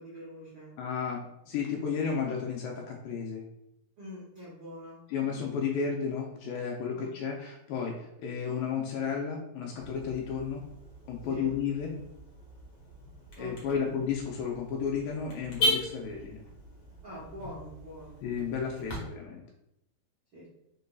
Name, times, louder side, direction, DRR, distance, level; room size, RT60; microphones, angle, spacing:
voice 1, 0.0-0.7 4.0-5.0 6.9-7.1 11.3-11.5 13.4-13.9 17.0-18.2 20.3-20.5, equal, 90° right, -8 dB, 1.0 m, -45 dB
voice 2, 0.8-3.4 5.1-10.6 11.1-12.0 13.4-16.4 18.2-19.4, left 6 dB, 80° left, 0 dB, 2.2 m, -33 dB
Car / Alarm, 9.8-19.0, left 1 dB, 55° left, 1.2 m, -37 dB
5.2 x 3.8 x 2.3 m, 0.82 s
omnidirectional pair, 4.0 m